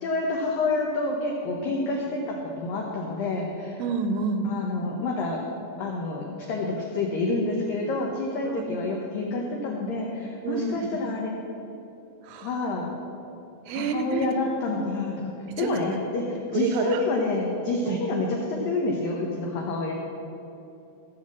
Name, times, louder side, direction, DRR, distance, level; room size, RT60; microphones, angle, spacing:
voice 1, 0.0-3.8 4.4-5.4 5.8-11.4 12.4-12.9 13.7-15.3 15.6-19.9, left 3 dB, 90° left, -1 dB, 1.9 m, -28 dB
voice 2, 3.8-4.5 8.4-8.7 10.4-11.0 12.2-12.6 13.7-14.2 15.5-15.8 16.5-17.0 17.9-18.0, right 5 dB, 80° right, 8 dB, 2.9 m, -29 dB
15.0 x 6.6 x 7.2 m, 2.9 s
omnidirectional pair, 5.6 m